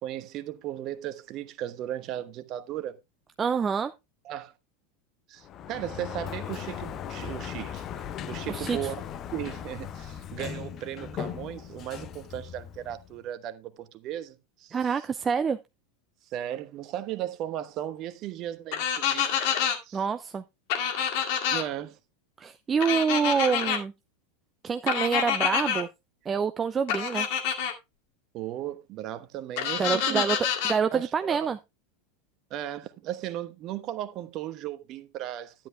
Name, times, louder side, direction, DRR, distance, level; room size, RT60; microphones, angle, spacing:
voice 1, 0.0-3.0 4.2-4.5 5.3-7.8 8.3-9.0 9.3-14.8 16.3-19.3 19.8-20.0 21.5-22.0 28.3-30.3 30.9-31.5 32.5-35.5, right 12 dB, 40° right, 1.1 m, -36 dB
voice 2, 3.4-3.9 8.5-8.9 14.7-15.6 19.9-20.4 22.4-23.9 24.6-25.9 26.3-27.3 29.8-30.4 30.6-31.6, right 6 dB, 25° right, 0.6 m, -26 dB
Sliding door, 5.4-13.2, left 9 dB, 35° left, 0.8 m, -38 dB
sound 1, 18.7-19.8 20.7-21.6 22.8-23.8 24.9-25.8 26.9-27.7 29.6-30.8, left 8 dB, 55° left, 2.1 m, -27 dB
12.5 x 10.5 x 2.2 m
figure-of-eight pair, 85°, 0 cm